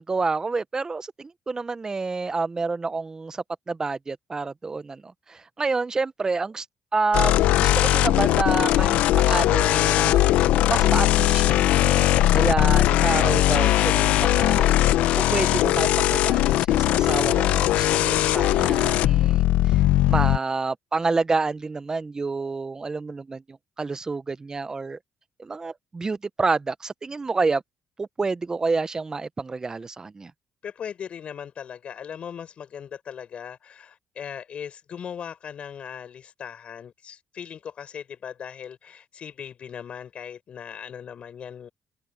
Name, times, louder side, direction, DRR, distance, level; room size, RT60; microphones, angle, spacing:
voice 1, 0.0-6.6 6.9-10.3 10.7-14.7 15.3-19.8 20.1-25.0 25.4-27.6 28.0-30.3, right 4 dB, 30° right, 1.2 m, -28 dB
sound 1, 7.1-20.4, left 14 dB, 80° left, 0.9 m, -20 dB
voice 2, 30.6-41.7, left 8 dB, 55° left, 7.2 m, -38 dB
open air
supercardioid pair, 65°, 2 cm